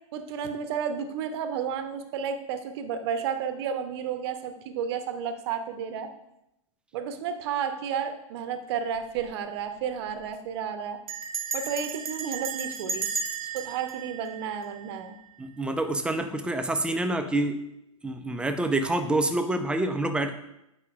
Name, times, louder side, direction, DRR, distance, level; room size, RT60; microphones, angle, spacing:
voice 1, 0.1-6.1 6.9-11.0 11.5-13.1 13.5-15.2, right 7 dB, 50° right, 9 dB, 0.7 m, -32 dB
Bell, 8.9-9.3 9.6-9.7 9.9-10.3 11.1-15.2, right 5 dB, 80° right, 0.7 m, -34 dB
voice 2, 15.4-17.6 18.0-20.3, right 2 dB, 5° right, 7 dB, 0.4 m, -27 dB
8.2 x 5.1 x 2.4 m, 0.84 s
figure-of-eight pair, 105°, 18 cm